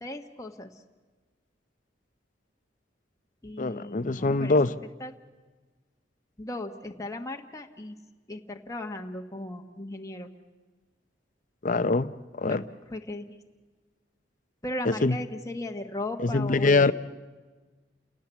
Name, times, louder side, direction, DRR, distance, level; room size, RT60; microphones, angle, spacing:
voice 1, 0.0-0.7 3.4-4.6 5.0-5.1 6.4-7.9 8.3-10.3 12.5-12.6 12.9-13.4 14.6-16.9, left 1 dB, 20° left, 1.3 m, -36 dB
voice 2, 3.6-4.7 11.6-12.1 12.4-12.6 14.8-15.2 16.2-16.9, left 3 dB, 45° left, 0.7 m, -23 dB
29.5 x 18.0 x 8.3 m
head